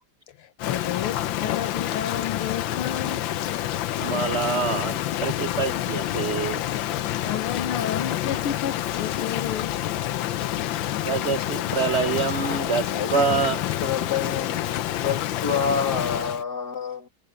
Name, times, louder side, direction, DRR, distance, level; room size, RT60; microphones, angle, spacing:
voice 1, 0.4-3.3 7.2-9.7 10.2-10.3, left 9 dB, 90° left, 2.0 m, -31 dB
Rain, 0.6-16.4, left 13 dB, 70° left, 1.4 m, -28 dB
voice 2, 4.0-6.6 10.6-10.7 11.0-13.6, right 5 dB, 85° right, 0.6 m, -26 dB
voice 3, 12.8-13.3 13.8-17.1, left 6 dB, 50° left, 3.4 m, -28 dB
omnidirectional pair, 2.3 m